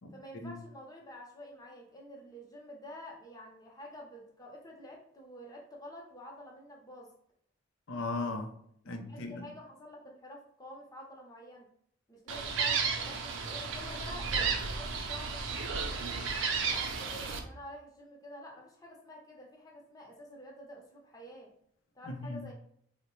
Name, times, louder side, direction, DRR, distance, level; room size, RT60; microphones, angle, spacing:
voice 1, 0.1-7.1 9.0-11.7 12.1-16.2 16.6-21.5 21.9-22.5, left 1 dB, 20° left, 0.7 m, -49 dB
voice 2, 7.9-9.4 22.1-22.4, left 2 dB, 85° left, 0.6 m, -38 dB
Gull seagull, 12.3-17.4, right 5 dB, 75° right, 0.5 m, -33 dB
3.8 x 2.1 x 3.0 m
head